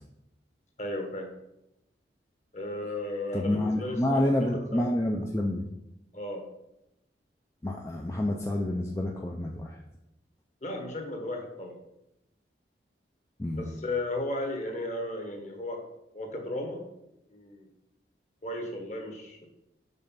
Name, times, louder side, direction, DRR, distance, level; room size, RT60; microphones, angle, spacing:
voice 1, 0.8-1.3 2.5-4.8 6.1-6.5 10.6-11.8 13.6-15.8 16.1-16.9 17.3-17.7 18.4-19.5, left 1 dB, 40° left, 3 dB, 1.3 m, -35 dB
voice 2, 3.3-5.6 7.6-9.8 13.4-13.7, left 1 dB, 15° left, 0 dB, 0.5 m, -28 dB
5.4 x 4.9 x 5.7 m, 0.87 s
head